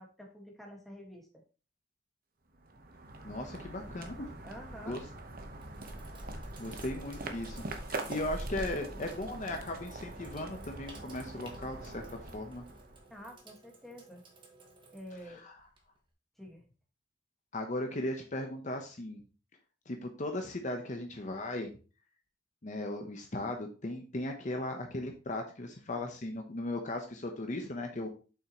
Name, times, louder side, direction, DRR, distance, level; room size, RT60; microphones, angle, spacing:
voice 1, 0.0-1.4 4.4-5.0 13.1-14.2 14.9-15.4 16.4-16.6, equal, ahead, 0 dB, 1.6 m, -48 dB
sound 1, 2.5-13.3, right 2 dB, 55° right, 1.0 m, -43 dB
voice 2, 3.2-4.3 4.8-5.0 6.6-7.6 7.9-12.1 12.3-12.6 15.4-15.5 17.5-19.2 19.9-21.7 22.6-28.1, left 1 dB, 45° left, 4 dB, 0.9 m, -37 dB
Sink (filling or washing), 5.3-16.1, right 3 dB, 30° right, 1.4 m, -57 dB
7.2 x 5.8 x 3.0 m, 0.35 s
head